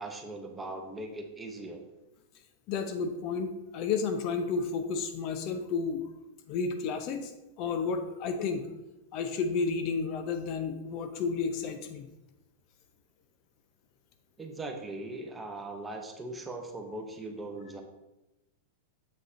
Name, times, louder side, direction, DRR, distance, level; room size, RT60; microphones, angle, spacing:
voice 1, 0.0-1.8 14.4-17.8, right 2 dB, 15° right, 4 dB, 1.0 m, -40 dB
voice 2, 2.7-6.0 6.5-7.3 7.6-8.7 9.1-12.1, left 5 dB, 50° left, 7 dB, 0.7 m, -31 dB
7.4 x 6.2 x 2.8 m, 0.98 s
hypercardioid pair, 110°, 0 cm